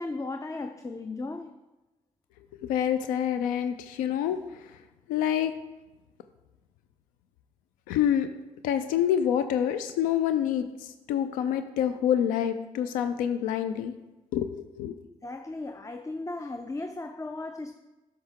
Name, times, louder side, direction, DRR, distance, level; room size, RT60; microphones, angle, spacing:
voice 1, 0.0-1.5 3.7-3.8 15.2-17.7, left 2 dB, 25° left, 0.5 m, -36 dB
voice 2, 2.6-4.4 5.1-5.5 7.9-8.3 8.6-13.9 14.3-14.9, left 9 dB, 90° left, 0.4 m, -27 dB
8.1 x 5.7 x 3.6 m
supercardioid pair, 50°, 14 cm